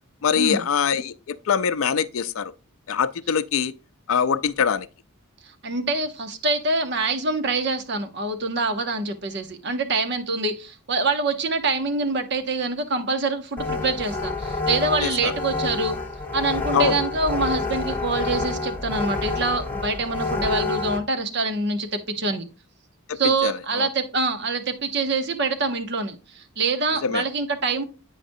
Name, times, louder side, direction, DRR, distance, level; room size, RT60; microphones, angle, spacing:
voice 1, 0.2-2.5 2.9-3.7 4.1-4.9 15.0-15.3 16.7-17.0 23.1-23.9 27.0-27.2, left 7 dB, 75° left, 0.4 m, -23 dB
voice 2, 5.6-16.0 16.3-22.4 23.2-27.8, right 3 dB, 55° right, 0.8 m, -25 dB
sound 1, 13.6-21.0, left 3 dB, 10° left, 0.8 m, -28 dB
8.6 x 5.0 x 2.6 m
head